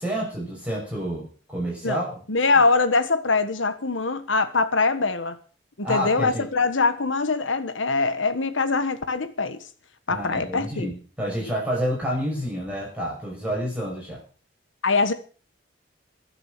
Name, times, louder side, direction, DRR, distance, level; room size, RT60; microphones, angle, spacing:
voice 1, 0.0-2.2 5.8-6.5 10.1-14.2, equal, 5° right, 6.3 m, -29 dB
voice 2, 2.3-5.4 5.8-9.6 10.1-10.9 14.8-15.1, left 3 dB, 85° left, 1.4 m, -23 dB
22.5 x 8.0 x 6.7 m
head